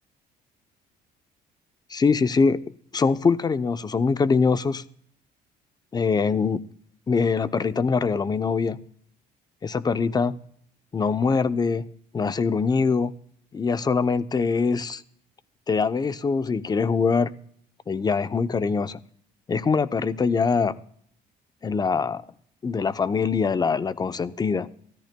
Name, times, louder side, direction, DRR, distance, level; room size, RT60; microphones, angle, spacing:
voice 1, 1.9-2.6 2.9-4.8 5.9-6.6 7.1-8.8 9.6-10.4 10.9-11.8 12.1-13.1 13.5-15.0 15.7-17.3 17.9-19.0 19.5-20.8 21.6-22.2 22.6-24.7, left 5 dB, 25° left, 14 dB, 0.6 m, -23 dB
23.5 x 14.0 x 2.2 m, 0.62 s
cardioid pair, 110°, 17 cm